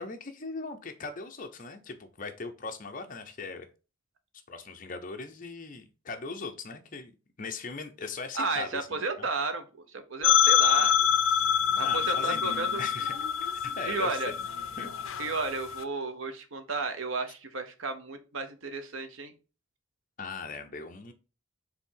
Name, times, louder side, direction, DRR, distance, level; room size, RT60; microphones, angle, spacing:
voice 1, 0.0-3.7 4.5-7.1 7.4-9.3 11.8-13.1 13.6-14.3 14.8-14.9 20.2-21.1, left 4 dB, 40° left, 5 dB, 0.8 m, -39 dB
voice 2, 8.3-9.6 9.9-10.9 11.8-12.9 13.9-14.3 15.2-19.3, right 3 dB, 70° right, 8 dB, 0.9 m, -33 dB
sound 1, 10.2-15.8, left 8 dB, 75° left, 0.5 m, -26 dB
4.9 x 3.6 x 5.6 m, 0.33 s
head